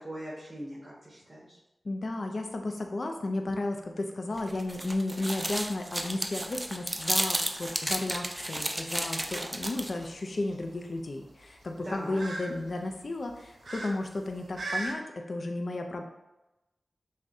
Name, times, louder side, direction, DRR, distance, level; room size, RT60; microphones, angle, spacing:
voice 1, 0.0-1.6 11.8-12.2, right 1 dB, 40° right, -8 dB, 1.2 m, -41 dB
voice 2, 1.8-16.0, left 2 dB, 65° left, 4 dB, 0.4 m, -33 dB
sound 1, 4.4-10.0, right 1 dB, 20° right, 0.4 m, -33 dB
sound 2, 5.2-14.9, right 2 dB, 90° right, 0.6 m, -43 dB
6.0 x 2.1 x 2.6 m, 0.98 s
cardioid pair, 45°, 0 cm